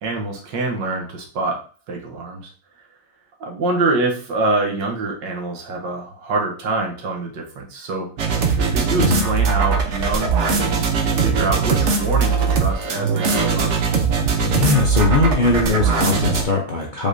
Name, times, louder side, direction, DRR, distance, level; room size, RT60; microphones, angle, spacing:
voice 1, 0.0-1.6 1.9-2.5 3.4-8.1 8.7-10.9 11.2-13.7, right 3 dB, 80° right, 1 dB, 1.7 m, -25 dB
sound 1, 8.2-16.4, right 5 dB, 55° right, 0.8 m, -20 dB
voice 2, 14.4-17.1, left 3 dB, 75° left, -2 dB, 0.4 m, -20 dB
5.2 x 3.8 x 2.6 m, 0.42 s
omnidirectional pair, 1.9 m